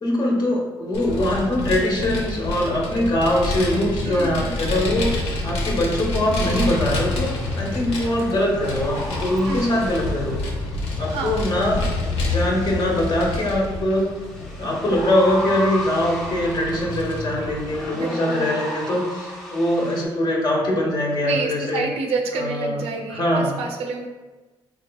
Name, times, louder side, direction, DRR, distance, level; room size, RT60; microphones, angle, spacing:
voice 1, 0.0-5.1 5.4-10.4 11.0-11.8 12.3-14.1 14.6-21.9 22.4-22.8 23.1-23.5, left 1 dB, 45° left, -2 dB, 1.0 m, -22 dB
Vehicle, 0.9-17.8, left 2 dB, 90° left, 0.6 m, -28 dB
voice 2, 4.0-4.7 9.5-9.8 11.1-11.4 17.9-18.5 21.2-24.1, right 4 dB, 90° right, 2 dB, 0.5 m, -28 dB
sound 1, 6.3-20.0, equal, ahead, 0.9 m, -36 dB
4.1 x 3.1 x 2.2 m, 1.2 s
cardioid pair, 75°, 10 cm